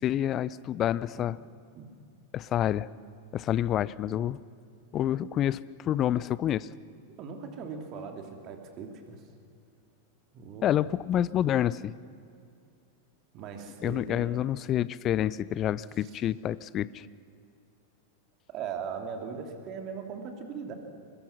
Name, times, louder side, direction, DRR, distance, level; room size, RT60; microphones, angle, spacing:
voice 1, 0.0-1.4 2.3-2.9 3.3-4.4 4.9-6.7 10.6-11.9 13.8-17.1, left 11 dB, 30° left, 19 dB, 0.5 m, -28 dB
voice 2, 7.2-9.2 10.3-10.7 13.3-14.3 16.0-16.1 18.5-20.7, right 6 dB, 35° right, 4 dB, 3.0 m, -39 dB
24.5 x 21.0 x 6.1 m, 2.5 s
figure-of-eight pair, 90°, 0 cm